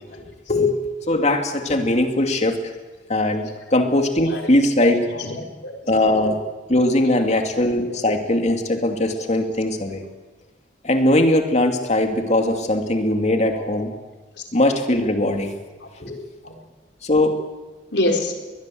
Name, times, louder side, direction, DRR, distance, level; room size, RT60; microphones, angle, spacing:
voice 1, 0.1-0.8 1.1-2.6 3.1-5.0 5.9-6.4 6.7-10.0 10.8-13.9 14.5-15.5 16.0-16.2 17.0-17.4, left 1 dB, 40° left, 5 dB, 2.7 m, -20 dB
voice 2, 4.8-5.8 7.0-7.1 7.8-8.0 14.4-14.5 15.8-15.9 16.4-16.6 17.9-18.3, left 2 dB, 70° left, 2 dB, 4.3 m, -26 dB
22.5 x 20.5 x 7.8 m, 1.3 s
head